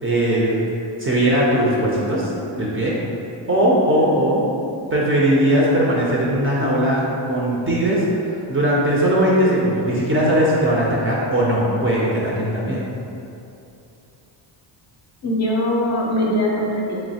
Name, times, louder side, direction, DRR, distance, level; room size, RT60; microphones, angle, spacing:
voice 1, 0.0-0.6 1.0-2.3 2.6-2.9 3.5-4.4 4.9-8.0 8.5-12.8, right 1 dB, 30° right, -5 dB, 0.4 m, -19 dB
voice 2, 4.0-4.5 15.2-17.0, left 1 dB, 35° left, -3 dB, 0.4 m, -22 dB
3.7 x 3.0 x 2.7 m, 2.7 s
cardioid pair, 135°, 48 cm